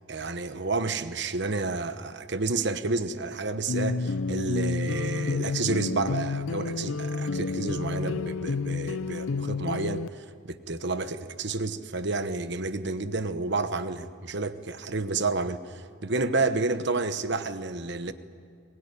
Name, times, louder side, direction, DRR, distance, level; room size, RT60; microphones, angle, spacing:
voice 1, 0.1-18.1, right 3 dB, 55° right, 1.1 m, -30 dB
sound 1, 3.7-10.1, left 3 dB, 75° left, 0.6 m, -30 dB
22.0 x 21.5 x 9.8 m
head